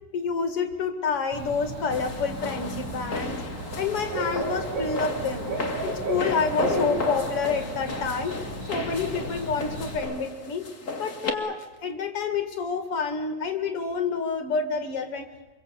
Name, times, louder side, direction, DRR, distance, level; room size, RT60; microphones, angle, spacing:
voice 1, 0.1-3.4 3.8-5.5 5.8-8.4 8.7-10.7 10.9-15.3, left 5 dB, 50° left, 8 dB, 3.0 m, -28 dB
Bird / Cricket, 1.3-10.0, right 2 dB, 75° right, 7.3 m, -33 dB
sound 1, 1.9-11.3, left 3 dB, 30° left, 2.1 m, -35 dB
26.5 x 23.0 x 8.2 m, 1.1 s
omnidirectional pair, 3.3 m